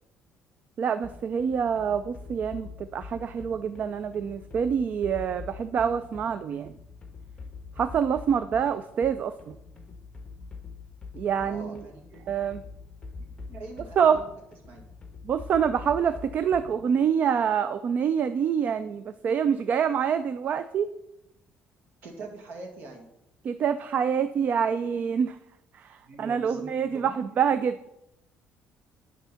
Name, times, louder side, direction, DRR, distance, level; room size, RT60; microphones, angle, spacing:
voice 1, 0.8-6.7 7.8-9.6 11.1-11.8 12.3-12.6 14.0-14.2 15.2-20.9 23.4-25.4 25.7-27.9, right 7 dB, 40° right, 11 dB, 0.3 m, -26 dB
sound 1, 1.0-16.9, left 4 dB, 20° left, 1.2 m, -44 dB
voice 2, 11.4-12.3 13.2-14.3 14.7-14.8 22.0-23.1 26.0-27.3, right 3 dB, 75° right, 1 dB, 2.0 m, -44 dB
10.5 x 3.6 x 5.6 m, 0.84 s
cardioid pair, 140°, 4 cm